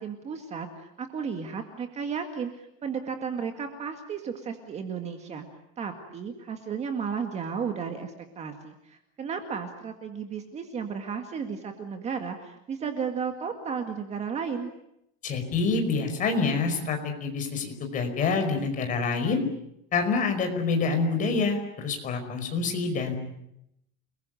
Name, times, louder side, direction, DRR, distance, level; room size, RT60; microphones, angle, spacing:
voice 1, 0.0-5.5 5.8-14.7, right 6 dB, 20° right, 5 dB, 2.0 m, -34 dB
voice 2, 15.2-19.4 19.9-23.2, left 4 dB, 25° left, 5 dB, 5.2 m, -27 dB
29.5 x 21.0 x 9.2 m, 0.80 s
cardioid pair, 175°, 31 cm